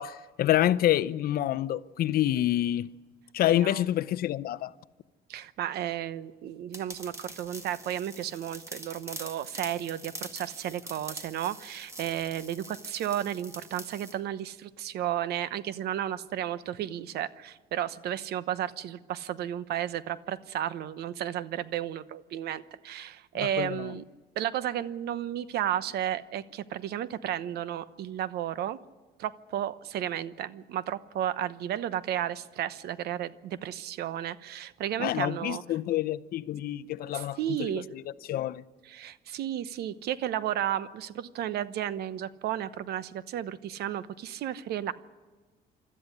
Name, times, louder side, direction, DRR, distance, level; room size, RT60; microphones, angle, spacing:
voice 1, 0.0-2.9 3.3-4.7 23.4-23.9 35.0-38.0 38.3-38.6, left 13 dB, 60° left, 0.7 m, -27 dB
voice 2, 3.5-3.8 5.3-24.0 24.4-28.8 29.2-35.6 37.1-37.9 38.9-44.9, right 11 dB, 70° right, 1.0 m, -33 dB
sound 1, 6.7-14.2, right 1 dB, 15° right, 1.8 m, -44 dB
25.5 x 13.5 x 9.9 m
cardioid pair, 110°, 17 cm